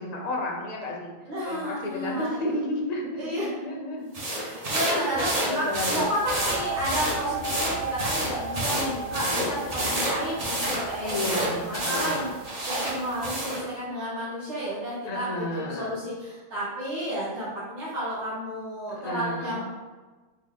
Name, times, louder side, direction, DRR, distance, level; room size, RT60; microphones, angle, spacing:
voice 1, 0.0-1.1 1.5-4.2 4.9-6.1 7.6-7.8 11.0-12.3 15.1-16.0 18.9-19.6, left 1 dB, 45° left, -1 dB, 0.6 m, -32 dB
voice 2, 1.3-2.4 3.2-3.5 4.3-11.1 11.4-19.6, equal, 75° right, -9 dB, 1.4 m, -32 dB
sound 1, 4.1-13.6, right 1 dB, 40° right, 0.7 m, -29 dB
sound 2, 6.0-13.5, right 2 dB, 85° left, 1.0 m, -36 dB
3.8 x 2.1 x 3.6 m, 1.3 s
omnidirectional pair, 1.2 m